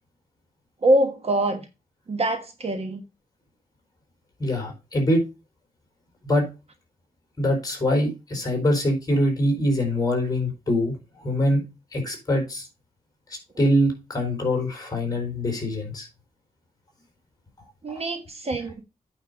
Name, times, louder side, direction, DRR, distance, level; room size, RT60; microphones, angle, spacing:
voice 1, 0.8-1.6 2.1-3.0 17.8-18.7, right 1 dB, 40° right, 1.2 m, -24 dB
voice 2, 4.4-5.2 6.2-6.5 7.4-11.6 11.9-12.7 13.6-16.1 18.0-18.1, left 1 dB, 25° left, 4.2 m, -24 dB
8.9 x 5.6 x 5.2 m
wide cardioid pair, 175°, 15 cm